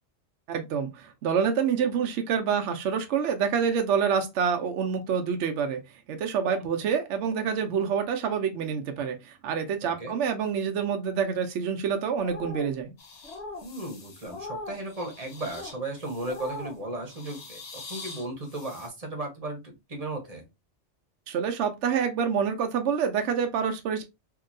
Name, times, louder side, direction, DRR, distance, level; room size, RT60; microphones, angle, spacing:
voice 1, 0.5-5.8 6.1-12.9 21.3-24.0, right 7 dB, 75° right, 0.9 m, -27 dB
voice 2, 9.8-10.1 13.6-20.5, right 2 dB, 35° right, 0.9 m, -36 dB
sound 1, 12.2-12.7 13.2-13.7 14.2-14.8 15.4-15.7 16.2-16.8, left 2 dB, 65° left, 1.1 m, -39 dB
sound 2, 13.0-14.4 14.8-16.7 17.0-18.9, left 4 dB, 50° left, 0.5 m, -46 dB
2.8 x 2.6 x 2.5 m
omnidirectional pair, 1.2 m